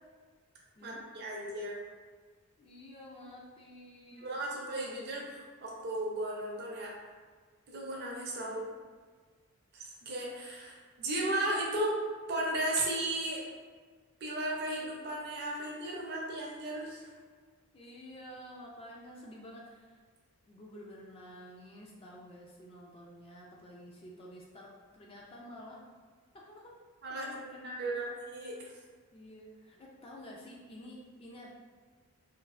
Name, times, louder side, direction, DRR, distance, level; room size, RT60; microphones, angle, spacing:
voice 1, 0.8-1.8 4.2-6.9 7.7-8.6 9.7-12.0 12.3-13.4 14.2-17.1 27.0-27.3 27.6-28.6, right 1 dB, 45° right, -2 dB, 0.5 m, -35 dB
voice 2, 2.6-4.3 8.4-8.6 17.7-20.0 20.5-25.8 26.3-26.8 27.1-27.9 29.1-31.5, equal, 25° left, -2 dB, 0.3 m, -50 dB
3.2 x 2.4 x 2.3 m, 1.5 s
head